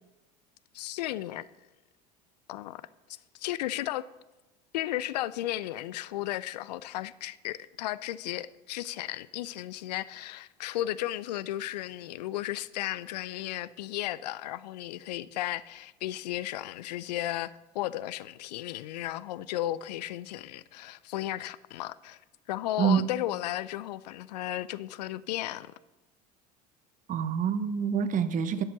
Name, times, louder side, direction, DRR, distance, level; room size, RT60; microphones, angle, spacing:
voice 1, 0.7-1.5 2.5-2.8 3.3-4.1 4.7-22.2 22.5-25.7, left 14 dB, 75° left, 0.4 m, -34 dB
voice 2, 22.8-23.1 27.1-28.6, right 7 dB, 40° right, 0.8 m, -26 dB
11.5 x 5.6 x 7.0 m
hypercardioid pair, 75°, 21 cm